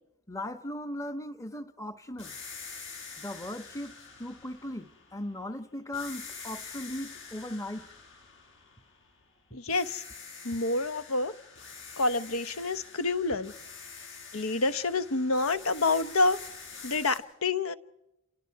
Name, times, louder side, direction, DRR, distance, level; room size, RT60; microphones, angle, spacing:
voice 1, 0.3-2.3 3.2-3.9 4.2-7.9, left 1 dB, 15° left, 1.1 m, -38 dB
sound 1, 2.2-5.5 5.9-9.3 9.7-17.2, left 5 dB, 60° left, 5.3 m, -46 dB
voice 2, 9.5-10.0 10.4-11.3 12.0-13.5 14.3-16.4 16.8-17.8, left 3 dB, 80° left, 1.0 m, -28 dB
29.0 x 28.0 x 4.8 m
head